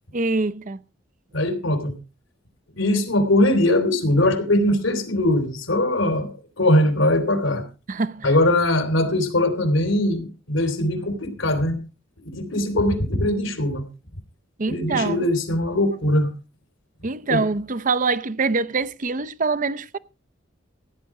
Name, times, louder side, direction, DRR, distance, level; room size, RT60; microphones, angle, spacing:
voice 1, 0.1-0.8 7.9-8.3 14.6-15.2 17.0-20.0, right 3 dB, 40° right, 0.6 m, -24 dB
voice 2, 1.3-1.9 2.8-6.3 6.6-7.6 8.2-11.8 12.2-13.8 14.7-16.3 17.3-17.4, left 1 dB, 80° left, 3.3 m, -21 dB
16.0 x 9.8 x 4.8 m
head